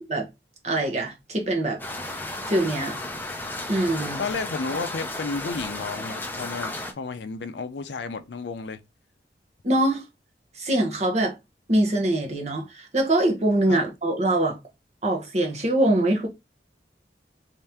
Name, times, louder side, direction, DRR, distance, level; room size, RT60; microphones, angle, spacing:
voice 1, 0.6-1.8 2.4-3.0 3.7-4.2 9.6-10.0 10.6-11.4 11.7-14.6 15.0-16.3, right 1 dB, 35° right, 1.0 m, -23 dB
sound 1, 1.8-6.9, left 2 dB, 10° left, 0.5 m, -34 dB
voice 2, 4.2-8.8 13.7-13.8, left 4 dB, 70° left, 0.5 m, -32 dB
3.2 x 2.8 x 3.4 m
head